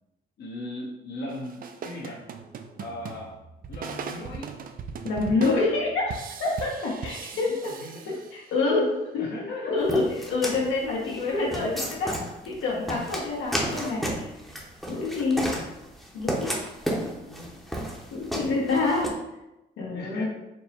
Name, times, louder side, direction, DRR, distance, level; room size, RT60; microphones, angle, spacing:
voice 1, 0.4-2.2 2.8-3.3 3.7-4.5 7.5-8.2 9.2-9.8 17.0-17.6 19.9-20.2, left 1 dB, 55° left, -3 dB, 0.8 m, -38 dB
sound 1, 1.3-8.7, right 6 dB, 45° right, 0.4 m, -39 dB
voice 2, 5.0-6.1 6.4-7.7 8.1-9.3 9.7-12.2 12.4-14.0 14.9-15.5 16.1-16.5 18.1-19.1 19.8-20.2, left 3 dB, 85° left, -4 dB, 1.3 m, -26 dB
sound 2, 9.9-19.1, equal, ahead, 0.8 m, -32 dB
4.4 x 2.1 x 4.2 m, 0.94 s
cardioid pair, 90°, 20 cm